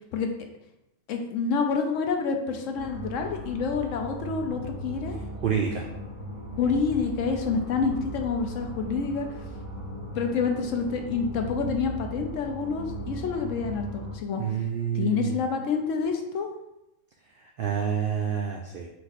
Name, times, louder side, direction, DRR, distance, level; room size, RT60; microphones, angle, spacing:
voice 1, 1.1-5.2 6.6-9.3 10.1-14.6 14.9-16.5, left 5 dB, 70° left, 4 dB, 0.9 m, -28 dB
sound 1, 2.7-14.2, right 1 dB, 25° right, 1.4 m, -38 dB
voice 2, 5.4-5.8 14.4-15.4 17.6-18.9, right 8 dB, 80° right, 1 dB, 0.5 m, -28 dB
4.4 x 2.5 x 4.0 m, 0.89 s
omnidirectional pair, 1.5 m